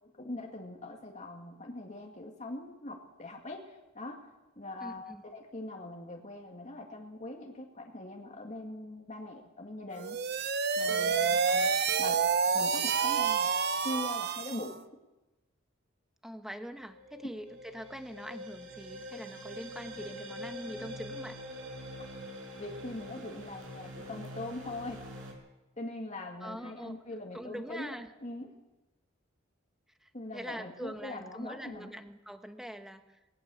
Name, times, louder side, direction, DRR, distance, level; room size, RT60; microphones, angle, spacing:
voice 1, 0.0-4.3 4.6-10.2 10.8-12.2 12.5-13.5 13.8-14.8 22.5-25.0 25.8-27.9 28.2-28.5 30.1-31.9, left 2 dB, 35° left, 0 dB, 2.1 m, -42 dB
voice 2, 4.8-5.2 10.9-11.4 16.2-21.4 26.4-26.9 27.3-28.1 30.0-33.4, equal, ahead, 7 dB, 1.3 m, -44 dB
sound 1, 9.9-14.8, right 6 dB, 55° right, 0.9 m, -28 dB
sound 2, 16.6-25.3, equal, 80° right, 5.6 m, -44 dB
20.0 x 18.5 x 7.1 m, 1.1 s
head